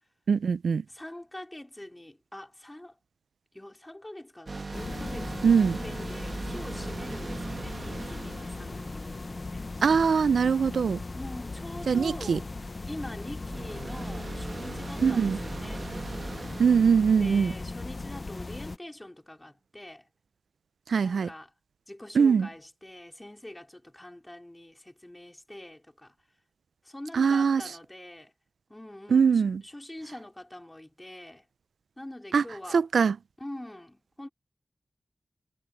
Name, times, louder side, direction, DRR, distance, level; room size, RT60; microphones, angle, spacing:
voice 1, 0.3-0.8 5.4-5.8 9.8-11.0 11.9-12.4 15.0-15.4 16.6-17.5 20.9-21.3 22.2-22.5 27.1-27.6 29.1-29.6 32.3-32.4 32.7-33.1, right 6 dB, 90° right, 0.4 m, -22 dB
voice 2, 0.9-3.0 3.5-9.6 11.1-12.5 12.9-15.9 17.2-20.1 21.0-21.5 21.9-26.1 26.8-28.3 28.7-31.4 32.0-32.8 33.4-34.3, left 1 dB, 20° left, 4.4 m, -44 dB
sound 1, 4.5-9.9 13.4-18.2, right 3 dB, 60° right, 1.2 m, -40 dB
sound 2, 4.7-18.8, left 3 dB, 50° left, 0.7 m, -38 dB
sound 3, 7.5-12.5, left 5 dB, 90° left, 3.6 m, -58 dB
cardioid pair, 40°, 0 cm